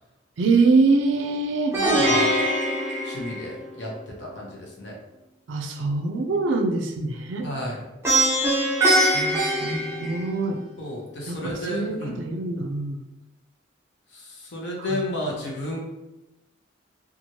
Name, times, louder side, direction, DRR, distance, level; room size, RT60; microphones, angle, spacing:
voice 1, 0.4-1.8 5.5-7.5 9.1-10.6 11.3-13.0 14.9-15.0, right 3 dB, 75° right, 4 dB, 0.4 m, -24 dB
voice 2, 1.7-2.3 3.0-4.9 7.4-7.8 10.8-12.2 14.1-15.8, left 1 dB, 65° left, -3 dB, 0.7 m, -32 dB
Plucked string instrument, 1.7-3.9 8.0-10.6, right 1 dB, 15° right, 0.5 m, -22 dB
3.0 x 2.4 x 2.7 m, 1.0 s
head